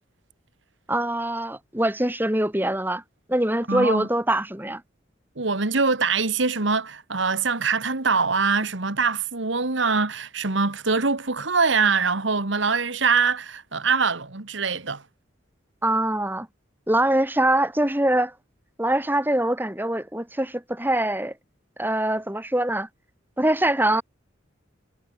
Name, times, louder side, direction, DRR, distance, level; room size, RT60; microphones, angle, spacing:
voice 1, 0.9-3.0 3.3-4.8 15.8-16.5 16.9-18.3 18.8-21.3 21.8-22.9 23.4-24.0, right 1 dB, 10° right, 2.6 m, -23 dB
voice 2, 3.7-4.1 5.4-15.0, right 4 dB, 75° right, 1.9 m, -23 dB
head